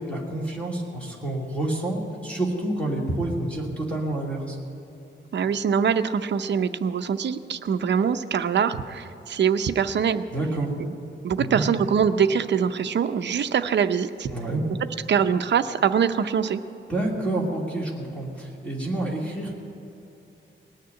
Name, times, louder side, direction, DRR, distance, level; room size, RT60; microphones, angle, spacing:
voice 1, 0.1-4.6 10.3-10.7 11.4-11.6 14.3-14.6 16.9-19.5, right 2 dB, 5° left, -3 dB, 2.6 m, -28 dB
voice 2, 5.3-10.2 10.8-10.9 11.2-14.3 15.1-16.6, right 7 dB, 65° right, 9 dB, 0.6 m, -23 dB
19.0 x 6.7 x 9.6 m, 2.9 s
wide cardioid pair, 150°, 20 cm